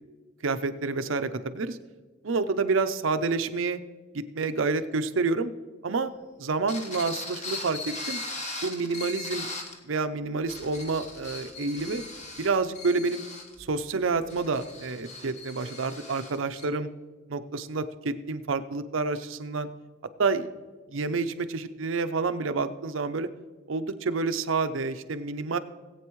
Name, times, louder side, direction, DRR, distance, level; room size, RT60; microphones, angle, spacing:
voice 1, 0.4-1.8 2.2-3.8 4.1-5.5 5.8-6.1 6.4-8.2 8.6-9.5 9.9-12.0 12.4-13.2 13.6-16.9 17.3-19.7 20.2-20.5 20.9-23.3 23.7-25.6, right 4 dB, 70° right, 10 dB, 0.6 m, -28 dB
sound 1, 6.7-9.8 10.3-16.7, left 3 dB, 35° left, 1.4 m, -39 dB
18.5 x 8.3 x 3.1 m, 1.3 s
head